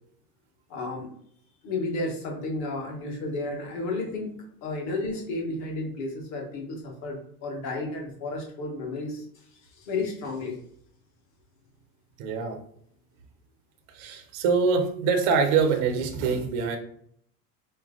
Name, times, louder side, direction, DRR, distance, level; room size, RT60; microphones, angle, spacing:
voice 1, 0.7-1.1 1.6-10.6, left 2 dB, 40° left, 0 dB, 1.4 m, -32 dB
voice 2, 12.2-12.6 13.9-16.8, right 5 dB, 30° right, 4 dB, 0.4 m, -24 dB
4.3 x 3.0 x 3.7 m, 0.66 s
supercardioid pair, 180°, 45 cm